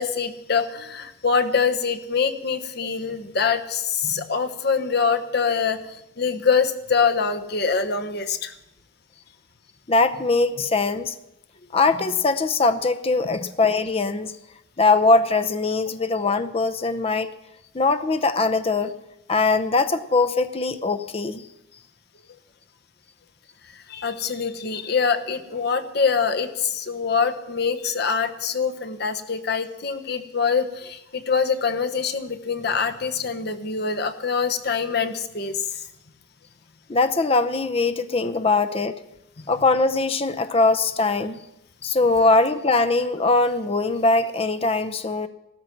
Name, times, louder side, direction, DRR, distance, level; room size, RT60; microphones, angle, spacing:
voice 1, 0.0-8.5 13.3-13.4 23.9-35.8, left 5 dB, 55° left, 7 dB, 1.1 m, -24 dB
voice 2, 9.9-11.1 11.7-14.4 14.8-17.3 17.7-18.9 19.3-21.4 36.9-39.0 39.5-41.4 41.8-45.3, left 3 dB, 30° left, 11 dB, 0.7 m, -21 dB
15.0 x 13.5 x 6.0 m, 0.85 s
head